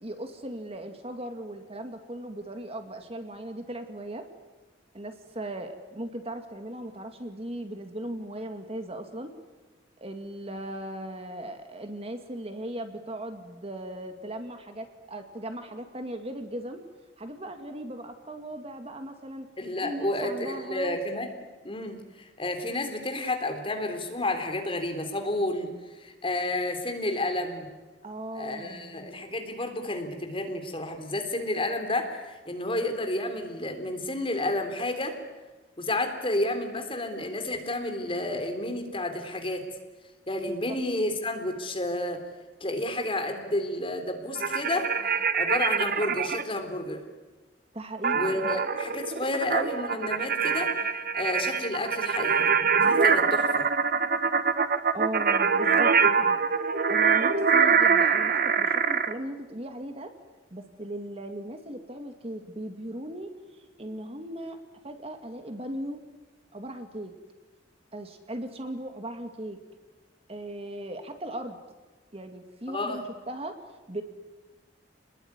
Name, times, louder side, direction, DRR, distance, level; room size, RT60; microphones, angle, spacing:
voice 1, 0.0-4.2 4.9-9.3 10.0-16.8 17.2-19.5 19.8-21.0 28.0-29.2 40.5-40.8 47.7-48.4 54.9-56.4 56.9-60.1 60.5-63.3 63.8-64.6 64.8-66.0 66.5-67.1 67.9-69.6 70.3-71.6 72.1-73.5 73.9-74.0, right 1 dB, 35° right, 6 dB, 2.2 m, -38 dB
voice 2, 19.6-21.3 21.6-27.7 28.4-35.2 35.8-39.7 40.3-42.2 42.6-45.1 45.3-47.0 48.1-50.9 51.1-53.7 72.7-73.0, left 1 dB, 30° left, 5 dB, 3.6 m, -31 dB
sound 1, 44.4-46.4 48.0-59.1, right 5 dB, 50° right, 1.3 m, -24 dB
29.5 x 20.5 x 9.7 m, 1.2 s
head